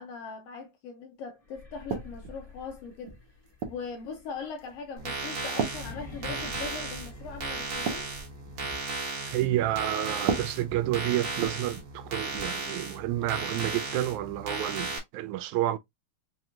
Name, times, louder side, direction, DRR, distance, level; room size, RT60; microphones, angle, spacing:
voice 1, 0.0-3.2 3.7-8.1, left 5 dB, 75° left, 1.5 m, -40 dB
sound 1, 1.4-8.3, left 4 dB, 15° left, 1.4 m, -47 dB
sound 2, 1.9-2.4 3.1-3.9 4.6-4.8 5.6-6.8 7.1-7.2 7.6-8.9 10.1-12.0 12.3-12.5 13.6-13.8, right 6 dB, 70° right, 1.0 m, -36 dB
sound 3, 5.0-15.0, right 3 dB, 55° right, 2.0 m, -35 dB
voice 2, 9.3-15.8, right 14 dB, 85° right, 1.9 m, -30 dB
5.2 x 2.9 x 2.4 m
omnidirectional pair, 3.3 m